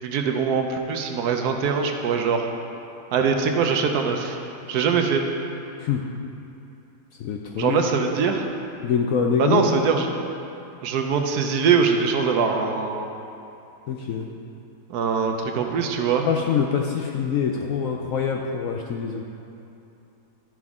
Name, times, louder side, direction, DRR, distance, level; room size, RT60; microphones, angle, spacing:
voice 1, 0.0-2.5 3.1-4.4 4.7-5.2 7.6-8.5 9.4-10.1 10.8-13.1 14.9-16.3, right 6 dB, 70° right, 4 dB, 1.1 m, -22 dB
voice 2, 7.2-7.8 8.8-9.9 13.9-14.3 16.2-19.2, left 6 dB, 70° left, 1 dB, 0.8 m, -24 dB
11.5 x 6.0 x 3.6 m, 2.7 s
omnidirectional pair, 1.8 m